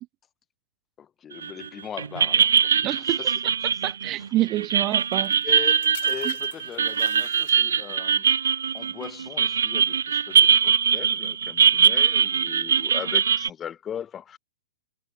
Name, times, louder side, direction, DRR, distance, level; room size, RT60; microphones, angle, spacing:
voice 1, 1.0-3.4 5.4-8.3 8.7-14.4, left 9 dB, 15° left, 4.1 m, -39 dB
sound 1, 1.4-1.7 2.0-13.5, right 7 dB, 85° right, 1.9 m, -22 dB
voice 2, 2.8-3.2 3.8-5.4 6.2-6.3, right 16 dB, 25° right, 1.9 m, -27 dB
sound 2, 4.9-8.0 8.8-9.1, left 14 dB, 50° left, 7.5 m, -45 dB
hypercardioid pair, 150°, 0 cm